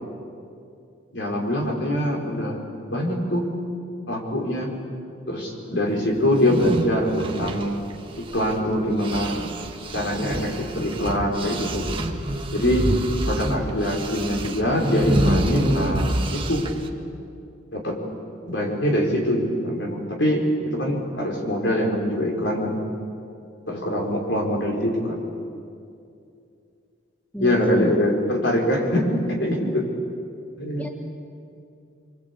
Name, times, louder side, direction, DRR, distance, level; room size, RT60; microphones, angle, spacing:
voice 1, 1.1-2.6 2.9-3.5 4.1-4.7 5.3-7.8 8.2-9.3 9.9-11.8 12.5-12.9 13.2-16.6 17.7-18.0 18.5-22.8 23.7-25.2 27.4-29.9 30.6-30.9, equal, 65° left, 0 dB, 5.1 m, -23 dB
sound 1, 6.3-8.7 9.0-16.9, right 1 dB, 25° right, 1.6 m, -27 dB
voice 2, 27.3-28.0 29.6-29.7 30.8-30.9, equal, 10° left, 3 dB, 1.2 m, -30 dB
26.5 x 24.0 x 8.6 m, 2.5 s
head